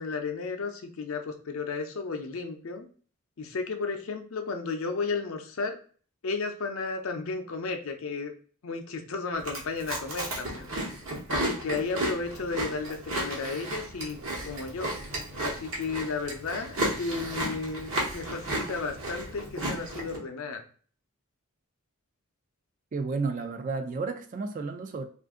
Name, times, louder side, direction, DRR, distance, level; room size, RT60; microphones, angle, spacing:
voice 1, 0.0-2.9 3.4-5.8 6.2-8.3 8.6-10.7 11.3-14.2 14.5-14.9 15.4-20.6, left 4 dB, 70° left, 0.5 m, -33 dB
Chewing mastication, 9.3-20.2, right 1 dB, 65° right, 1.0 m, -33 dB
voice 2, 22.9-25.1, right 4 dB, 35° right, 0.3 m, -32 dB
2.5 x 2.5 x 3.6 m
head